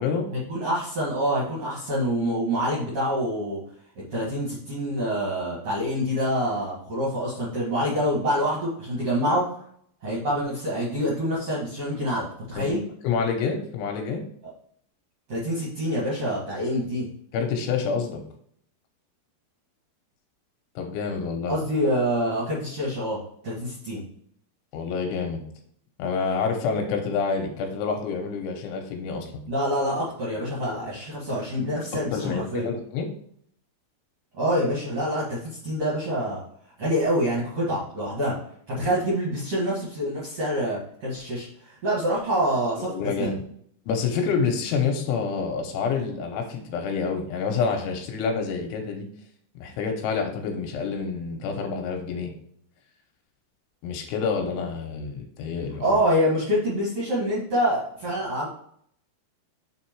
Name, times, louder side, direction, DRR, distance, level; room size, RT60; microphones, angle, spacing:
voice 1, 0.3-3.6 4.1-9.4 10.0-12.8 15.3-17.1 21.5-24.0 29.5-32.7 34.4-36.4 36.8-38.3 38.7-41.5 41.8-43.3 55.8-58.5, equal, 65° right, -6 dB, 1.6 m, -26 dB
voice 2, 12.6-14.2 17.3-18.2 20.8-21.5 24.7-25.4 26.0-29.4 31.9-33.1 42.8-43.4 43.9-49.1 49.6-52.3 53.8-55.9, left 5 dB, 75° left, 3 dB, 3.0 m, -28 dB
7.4 x 3.7 x 4.5 m, 0.65 s
omnidirectional pair, 5.9 m